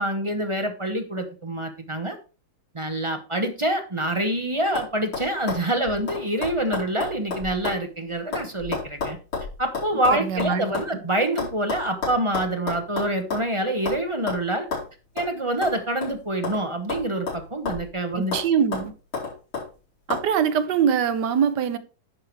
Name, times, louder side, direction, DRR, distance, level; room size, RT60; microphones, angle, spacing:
voice 1, 0.0-2.2 2.7-9.2 9.6-14.7 15.1-18.4, right 1 dB, 20° right, 0.8 m, -26 dB
sound 1, 4.0-4.4 4.7-4.9 5.1-10.9 11.4-13.5 13.9-14.0 14.3-14.4 14.7-14.9 15.2-15.3 15.6-16.6 16.9-17.9 18.3-18.5 18.7-19.7 20.1-20.2, left 4 dB, 85° left, 5.2 m, -31 dB
voice 2, 10.1-10.6 18.2-18.9 20.1-21.8, right 7 dB, 65° right, 1.3 m, -23 dB
10.5 x 4.9 x 4.7 m
omnidirectional pair, 2.2 m